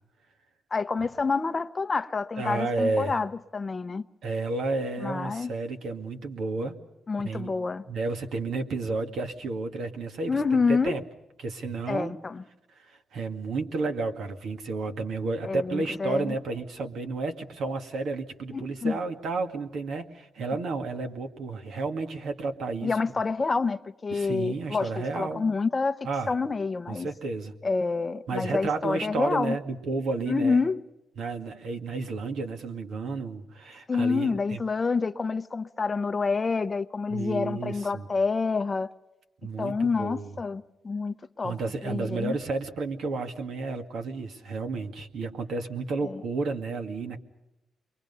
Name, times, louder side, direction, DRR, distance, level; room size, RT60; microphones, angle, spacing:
voice 1, 0.7-4.0 5.0-5.5 7.1-7.8 10.3-11.0 11.9-12.4 15.4-16.3 18.5-19.0 22.8-26.0 26.3-27.1 27.6-29.6 30.3-30.8 33.9-38.9 39.6-41.6 41.8-42.4 46.0-46.2, left 4 dB, 30° left, 0.7 m, -28 dB
voice 2, 2.4-3.2 4.2-6.8 7.2-7.5 7.9-11.0 11.4-12.2 12.8-23.0 24.1-25.5 26.0-26.3 26.9-27.5 28.3-30.6 31.2-34.6 37.1-38.1 39.4-40.4 41.4-47.2, right 3 dB, 75° right, 2.1 m, -32 dB
28.5 x 23.0 x 5.5 m
cardioid pair, 105°, 0 cm